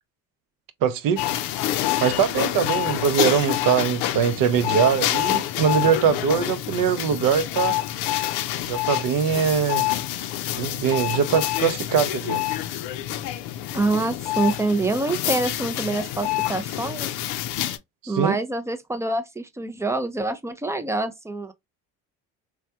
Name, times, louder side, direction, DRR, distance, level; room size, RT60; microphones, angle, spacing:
voice 1, 0.8-1.3 2.0-7.8 8.7-9.9 10.6-12.4 18.0-18.4, right 7 dB, 50° right, 0.6 m, -22 dB
sound 1, 1.2-17.8, left 14 dB, 75° left, 0.6 m, -27 dB
voice 2, 13.7-17.1 18.1-21.5, right 2 dB, 5° right, 0.4 m, -26 dB
3.2 x 2.3 x 2.7 m
hypercardioid pair, 65°, 42 cm